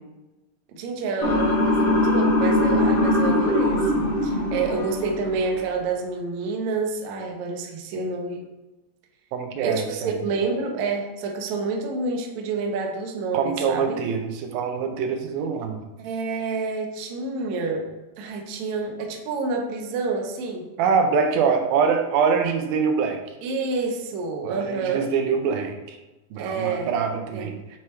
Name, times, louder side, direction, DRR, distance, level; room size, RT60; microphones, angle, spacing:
voice 1, 0.7-8.4 9.6-14.0 16.0-17.9 18.2-20.6 23.4-25.0 26.4-26.9 27.3-27.5, right 4 dB, 70° right, 1 dB, 1.8 m, -28 dB
Motor vehicle (road) / Siren, 1.2-5.3, left 1 dB, 50° left, 1.2 m, -21 dB
voice 2, 9.3-10.1 13.3-15.8 20.8-23.2 24.4-26.0 26.3-27.6, right 6 dB, 85° right, 5 dB, 2.5 m, -24 dB
7.0 x 4.5 x 3.2 m, 1.1 s
omnidirectional pair, 4.2 m